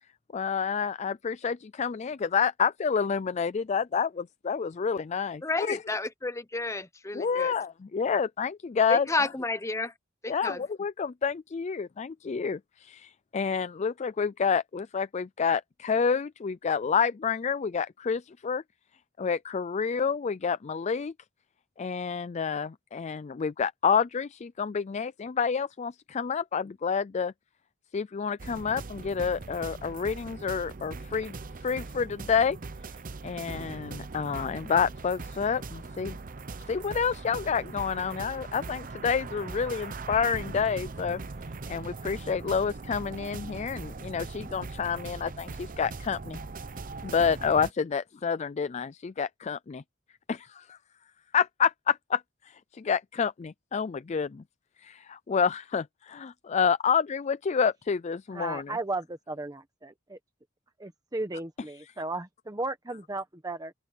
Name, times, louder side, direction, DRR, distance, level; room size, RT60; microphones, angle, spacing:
voice 1, 0.3-5.8 7.1-9.3 10.3-18.6 19.2-21.1 21.8-27.3 27.9-31.4 31.6-32.6 33.2-36.2 36.7-41.2 41.7-46.4 47.0-49.8 50.3-50.8 51.3-54.4 54.8-58.8, left 6 dB, 35° left, 0.4 m, -29 dB
voice 2, 5.4-7.5 8.9-9.9 10.2-10.6, left 3 dB, 15° left, 0.8 m, -31 dB
sound 1, 28.4-47.7, right 3 dB, 40° right, 0.7 m, -40 dB
voice 3, 58.3-60.2 60.8-63.7, right 2 dB, 20° right, 1.1 m, -35 dB
open air
head